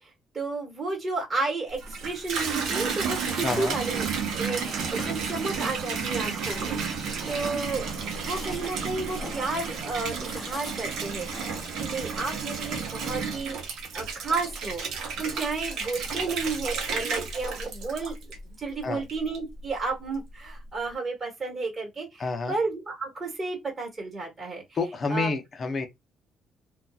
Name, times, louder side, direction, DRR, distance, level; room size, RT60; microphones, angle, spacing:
voice 1, 0.0-4.0 4.4-14.8 15.2-18.2 18.4-24.6 25.1-25.3, right 3 dB, 25° right, 1.2 m, -32 dB
Water tap faucet / Bathtub (filling or washing), 1.7-18.6 19.1-19.7, right 5 dB, 75° right, 0.8 m, -32 dB
sound 1, 3.3-11.6, left 2 dB, 15° left, 1.0 m, -46 dB
voice 2, 3.4-3.8 18.8-19.0 22.2-22.5 24.7-25.9, left 3 dB, 40° left, 0.6 m, -29 dB
2.7 x 2.3 x 2.3 m
cardioid pair, 115°, 0 cm